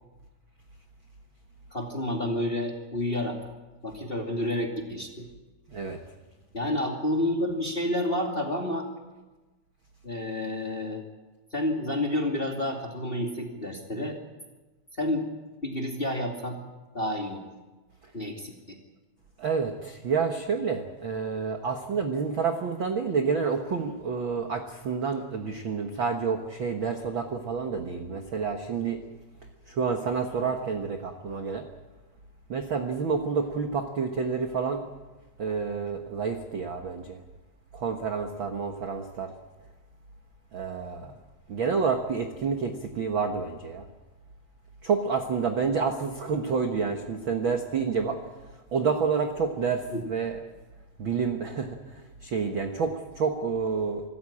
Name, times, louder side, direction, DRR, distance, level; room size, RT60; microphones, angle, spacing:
voice 1, 1.7-3.4 3.8-5.3 6.5-8.9 10.0-11.0 11.5-14.2 15.0-15.3 15.6-16.6 16.9-17.5 18.1-18.8 49.9-50.1, left 1 dB, 20° left, 1 dB, 1.9 m, -29 dB
voice 2, 19.4-29.0 29.7-31.7 32.5-34.9 35.4-37.2 37.7-39.3 40.5-41.1 41.5-43.9 44.8-48.2 48.7-50.4 51.0-54.0, right 5 dB, 60° right, 4 dB, 1.2 m, -29 dB
25.5 x 14.5 x 8.7 m, 1.2 s
omnidirectional pair, 4.3 m